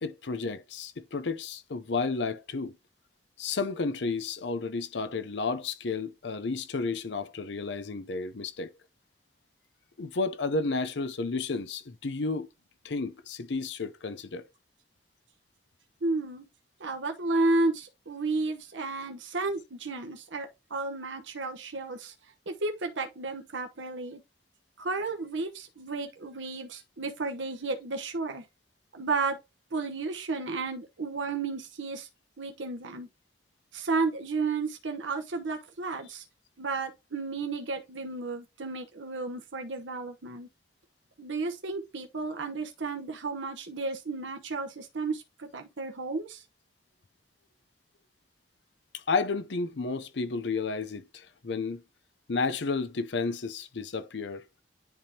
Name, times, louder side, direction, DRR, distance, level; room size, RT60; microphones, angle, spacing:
voice 1, 0.0-2.7 3.4-8.7 10.0-12.5 12.8-14.5 48.9-51.8 52.3-54.4, left 4 dB, 65° left, 0.6 m, -32 dB
voice 2, 16.0-16.4 16.8-22.1 22.5-24.2 24.8-28.4 28.9-29.4 29.7-32.1 32.4-33.1 33.7-36.2 36.6-40.5 41.2-46.4, right 3 dB, 85° right, 1.0 m, -32 dB
10.5 x 3.5 x 2.8 m
head